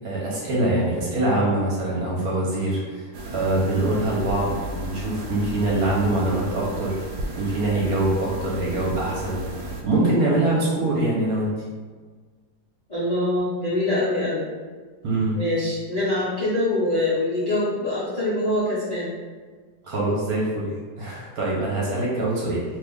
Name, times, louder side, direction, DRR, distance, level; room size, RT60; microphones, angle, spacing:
voice 1, 0.0-7.0 7.4-9.4 9.8-11.5 15.0-15.4 19.8-20.7 21.0-22.6, right 2 dB, 60° right, -5 dB, 1.1 m, -24 dB
sound 1, 3.1-9.8, right 2 dB, 85° right, 1.3 m, -34 dB
voice 2, 12.9-14.5 15.3-19.1, left 1 dB, 60° left, -11 dB, 0.4 m, -24 dB
2.8 x 2.4 x 3.5 m, 1.5 s
omnidirectional pair, 2.0 m